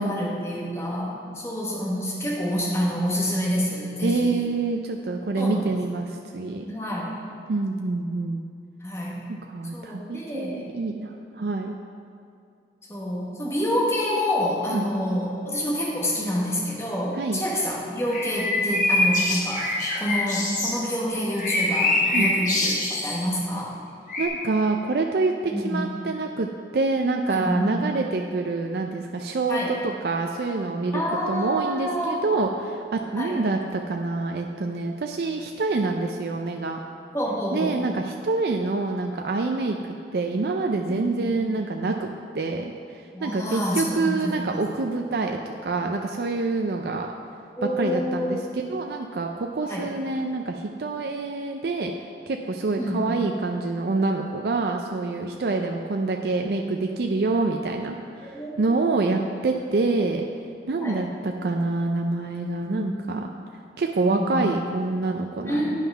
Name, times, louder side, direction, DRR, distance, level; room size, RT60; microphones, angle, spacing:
voice 1, 0.0-4.3 5.4-5.7 6.7-7.2 8.8-9.3 9.7-10.6 12.9-19.7 19.9-23.7 25.5-25.9 27.3-27.9 29.5-29.8 30.9-32.2 33.2-33.4 37.1-37.9 40.9-41.4 43.1-44.6 47.6-48.4 49.6-49.9 52.8-53.1 58.2-58.8 60.8-61.0 62.7-62.9 64.1-64.4 65.4-65.8, equal, 15° left, -5 dB, 1.5 m, -28 dB
voice 2, 4.0-6.6 7.5-8.4 9.3-11.8 14.7-14.9 17.2-17.4 22.1-22.3 24.2-26.5 26.7-36.8 37.5-42.1 42.3-47.1 47.8-51.9 52.3-60.3 60.7-63.3 63.8-65.8, right 3 dB, 65° right, 3 dB, 0.4 m, -26 dB
sound 1, 18.1-20.7 21.3-23.2 24.1-24.3, left 2 dB, 45° left, 1.4 m, -24 dB
9.1 x 5.7 x 5.6 m, 2.4 s
head